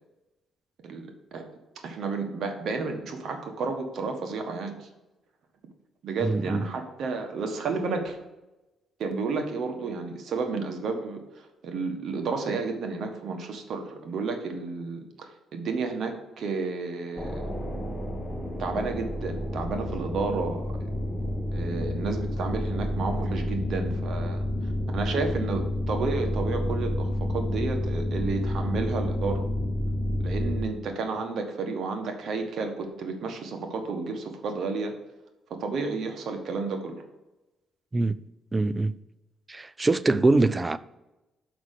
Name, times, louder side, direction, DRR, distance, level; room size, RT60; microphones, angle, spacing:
voice 1, 0.8-1.4 1.8-4.9 6.0-8.2 9.0-17.5 18.6-20.7 21.5-29.4 30.2-34.9 35.5-36.9, right 4 dB, 65° right, 1.4 m, -31 dB
voice 2, 6.2-6.6 37.9-38.2 38.5-38.9 39.5-40.8, right 2 dB, 25° right, 0.4 m, -23 dB
sound 1, 17.1-30.6, left 1 dB, 10° left, 1.3 m, -30 dB
6.0 x 5.5 x 6.5 m
cardioid pair, 90°, 0 cm